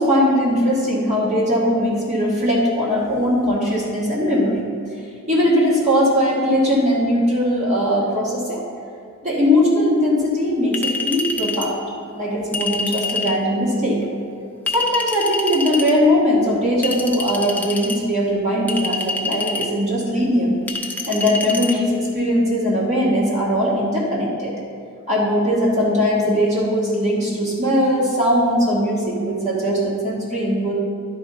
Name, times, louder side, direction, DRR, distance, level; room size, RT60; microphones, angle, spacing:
voice 1, 0.0-4.7 5.3-8.6 9.2-11.8 12.1-14.0 14.7-20.6 21.1-24.5 25.1-30.7, equal, 35° right, -6 dB, 1.3 m, -20 dB
Chink clink, 10.7-11.7 12.5-13.4 14.7-15.9 16.8-18.0 18.7-19.7 20.7-21.7, left 3 dB, 10° left, 0.6 m, -26 dB
11.0 x 3.8 x 5.4 m, 2.3 s
head